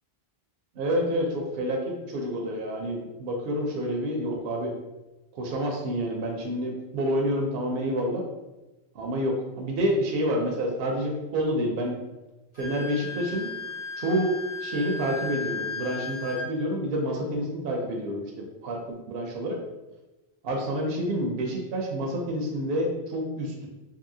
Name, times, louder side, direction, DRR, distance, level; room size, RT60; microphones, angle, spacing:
voice 1, 0.8-1.8 2.1-4.7 5.3-8.2 9.0-11.9 12.6-13.5 14.0-19.6 20.4-23.7, equal, 65° right, 0 dB, 0.8 m, -28 dB
Wind instrument woodwind instrument, 12.5-16.5, left 4 dB, 80° left, 0.9 m, -35 dB
2.7 x 2.7 x 2.6 m, 1.1 s
omnidirectional pair, 1.1 m